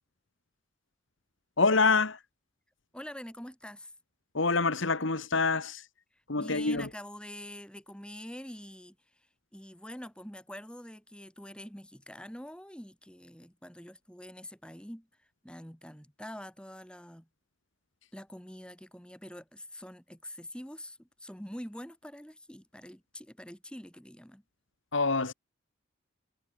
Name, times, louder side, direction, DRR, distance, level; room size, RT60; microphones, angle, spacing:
voice 1, 1.6-2.2 4.3-5.8 6.3-6.9 24.9-25.3, left 4 dB, 65° left, 1.6 m, -26 dB
voice 2, 2.9-3.9 6.4-9.0 9.5-15.1 15.4-17.3 18.1-24.4, equal, 5° left, 6.1 m, -45 dB
head